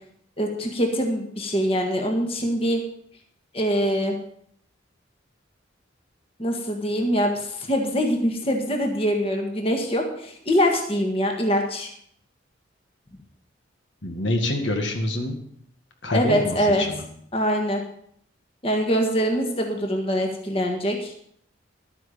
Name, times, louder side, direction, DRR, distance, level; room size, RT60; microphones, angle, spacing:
voice 1, 0.4-2.8 3.5-4.2 6.4-11.9 16.1-16.8 17.3-17.8 18.6-21.1, equal, 30° left, 2 dB, 1.6 m, -23 dB
voice 2, 14.0-15.4 16.0-17.0, left 1 dB, 75° left, 3 dB, 1.9 m, -26 dB
12.0 x 9.3 x 5.2 m, 0.67 s
head